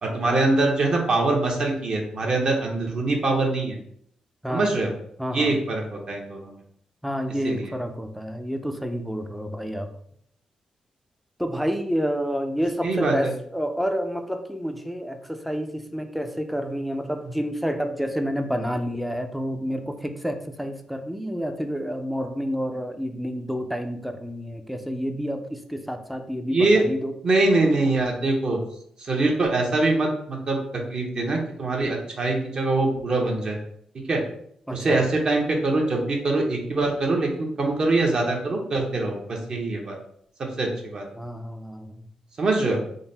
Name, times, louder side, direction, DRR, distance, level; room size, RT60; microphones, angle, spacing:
voice 1, 0.0-3.8 4.5-4.9 5.3-6.6 7.4-7.7 12.8-13.3 26.5-26.8 27.2-28.6 29.0-30.6 30.9-33.6 34.1-34.2 34.7-40.0 40.6-41.0 42.4-42.8, right 2 dB, 45° right, 0 dB, 0.8 m, -23 dB
voice 2, 5.2-5.5 7.0-9.9 11.4-27.1 34.7-35.0 41.2-42.1, equal, ahead, 6 dB, 0.4 m, -29 dB
3.9 x 2.0 x 3.9 m, 0.68 s
cardioid pair, 115°, 2 cm